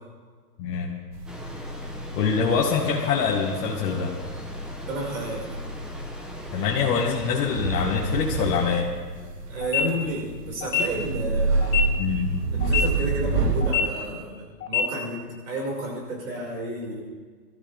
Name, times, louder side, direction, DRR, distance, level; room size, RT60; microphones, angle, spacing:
voice 1, 0.6-0.9 2.1-4.2 6.5-8.9 12.0-12.4, left 5 dB, 30° left, -3 dB, 1.8 m, -24 dB
sound 1, 1.1-13.7, right 3 dB, 75° right, 2.0 m, -29 dB
sound 2, 1.3-8.8, equal, ahead, 0.8 m, -40 dB
voice 2, 4.9-5.4 6.5-6.7 9.2-11.9 12.5-15.2 15.4-17.0, right 1 dB, 55° right, -2 dB, 6.0 m, -31 dB
sound 3, 9.6-9.8 10.6-10.8 11.6-11.8 12.6-12.8 13.6-13.8 14.6-14.8, left 12 dB, 60° left, 3.0 m, -24 dB
22.5 x 13.5 x 3.6 m, 1.5 s
hypercardioid pair, 140°, 48 cm